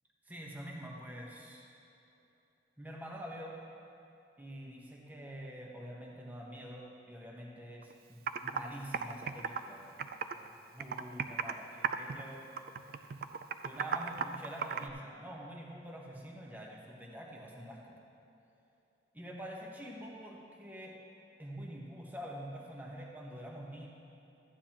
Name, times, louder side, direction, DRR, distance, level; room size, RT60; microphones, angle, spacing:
voice 1, 0.2-1.7 2.8-3.7 4.4-9.9 10.3-12.5 13.6-17.9 19.1-21.0 21.4-23.9, equal, 10° right, -2 dB, 1.0 m, -46 dB
Computer keyboard, 7.8-7.9 8.3-8.6 8.9-10.5 10.8-11.6 11.8-12.2 12.6-14.9, right 6 dB, 55° right, 0.3 m, -35 dB
13.0 x 9.5 x 2.9 m, 2.9 s
head